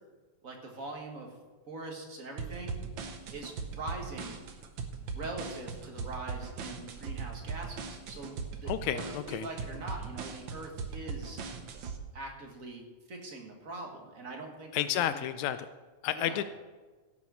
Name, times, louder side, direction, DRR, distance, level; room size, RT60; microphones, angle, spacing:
voice 1, 0.4-1.3 1.7-2.8 3.3-4.4 5.1-11.4 12.1-15.2 16.1-16.4, right 2 dB, 35° right, 1 dB, 1.5 m, -43 dB
sound 1, 2.4-12.0, right 5 dB, 90° right, 1.0 m, -39 dB
voice 2, 8.7-9.5 14.7-15.7 16.0-16.4, left 11 dB, 80° left, 12 dB, 1.8 m, -31 dB
16.5 x 6.1 x 6.2 m, 1.3 s
omnidirectional pair, 3.5 m